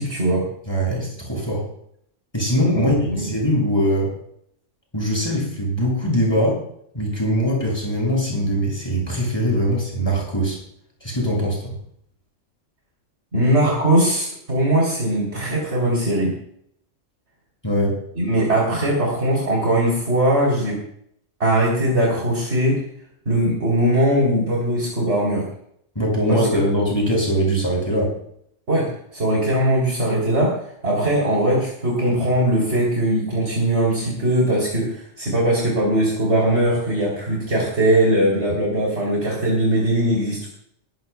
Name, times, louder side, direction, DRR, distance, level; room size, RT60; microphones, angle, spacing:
voice 1, 0.0-0.5 2.7-3.3 13.3-16.4 18.1-20.8 21.4-22.8 23.3-25.5 26.3-26.5 28.7-40.5, right 1 dB, 65° right, -4 dB, 3.9 m, -20 dB
voice 2, 0.7-1.6 2.3-4.1 4.9-6.6 6.9-10.6 11.0-11.7 17.6-18.0 25.9-28.2, equal, 20° left, -3 dB, 6.7 m, -21 dB
20.0 x 15.0 x 2.3 m, 0.68 s
omnidirectional pair, 1.3 m